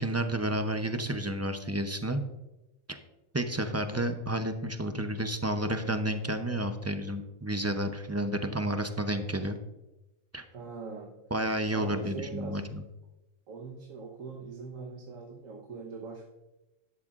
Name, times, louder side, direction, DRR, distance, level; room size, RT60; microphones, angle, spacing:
voice 1, 0.0-2.2 2.9-3.0 3.3-9.6 10.3-10.4 11.3-12.8, right 1 dB, 20° right, 7 dB, 0.4 m, -31 dB
voice 2, 10.5-11.2 11.7-12.7 13.5-16.2, right 4 dB, 85° right, 1 dB, 1.5 m, -42 dB
13.0 x 11.0 x 2.5 m, 0.99 s
omnidirectional pair, 1.3 m